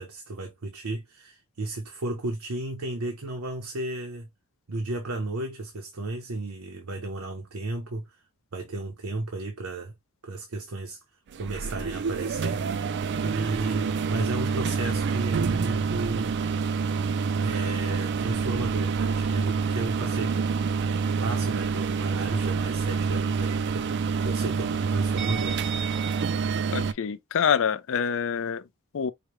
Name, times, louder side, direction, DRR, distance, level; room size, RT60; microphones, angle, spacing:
voice 1, 0.0-4.3 4.7-8.2 8.5-9.9 10.2-11.0 11.3-12.6 13.2-16.3 17.4-20.5 21.2-25.6, right 2 dB, 80° right, 0.8 m, -33 dB
sound 1, 11.3-26.9, right 5 dB, 55° right, 0.4 m, -27 dB
voice 2, 26.7-28.7 28.9-29.1, left 7 dB, 65° left, 0.5 m, -26 dB
4.9 x 2.2 x 3.0 m
head